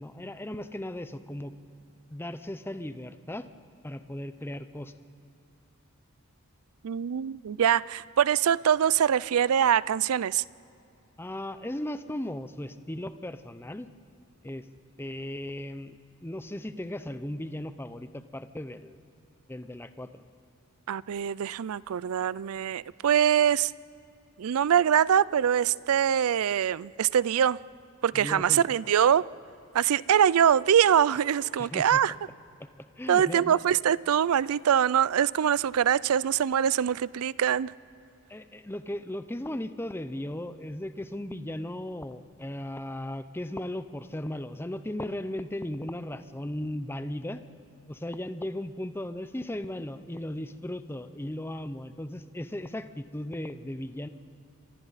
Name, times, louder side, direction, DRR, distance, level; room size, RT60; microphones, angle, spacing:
voice 1, 0.0-1.5 2.1-3.5 3.8-4.9 11.2-13.9 14.4-14.7 15.0-19.0 19.5-20.2 28.1-29.0 31.6-32.0 32.6-32.7 33.0-33.6 38.3-47.4 47.9-54.1, left 1 dB, 10° left, 11 dB, 0.6 m, -36 dB
voice 2, 6.8-10.4 20.9-23.7 24.4-27.6 28.0-29.2 29.7-32.1 33.1-37.7, right 9 dB, 80° right, 21 dB, 0.4 m, -23 dB
29.5 x 24.5 x 4.1 m, 2.7 s
head